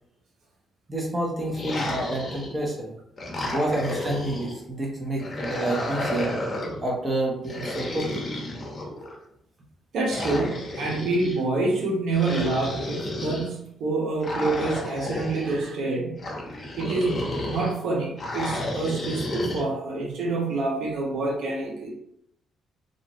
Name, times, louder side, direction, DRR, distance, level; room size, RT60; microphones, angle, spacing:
voice 1, 0.9-2.9 3.4-6.3 6.8-8.3, right 1 dB, 25° right, -2 dB, 0.9 m, -29 dB
sound 1, 1.5-2.7 3.2-4.6 5.2-6.8 7.4-9.2 10.1-11.4 12.1-13.5 14.2-15.5 16.2-17.7 18.2-19.6, left 1 dB, 40° left, 0.8 m, -31 dB
voice 2, 9.9-16.2 16.8-21.9, right 3 dB, 75° right, -2 dB, 0.7 m, -27 dB
2.5 x 2.4 x 3.0 m, 0.73 s
cardioid pair, 90°, 0 cm